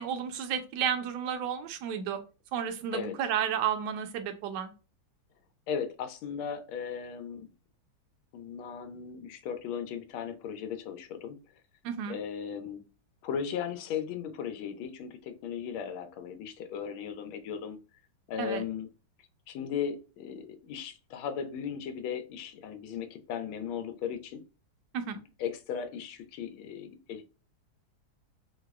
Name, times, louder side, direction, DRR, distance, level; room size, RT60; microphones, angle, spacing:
voice 1, 0.0-2.2 2.5-4.7 11.8-12.2 18.4-18.6 24.9-25.2, right 8 dB, 70° right, 7 dB, 1.1 m, -32 dB
voice 2, 5.7-7.5 8.3-11.4 12.1-12.8 13.2-17.8 18.3-18.9 19.5-24.4 25.4-27.2, left 7 dB, 90° left, 8 dB, 1.4 m, -37 dB
4.5 x 2.0 x 2.3 m, 0.33 s
omnidirectional pair, 2.2 m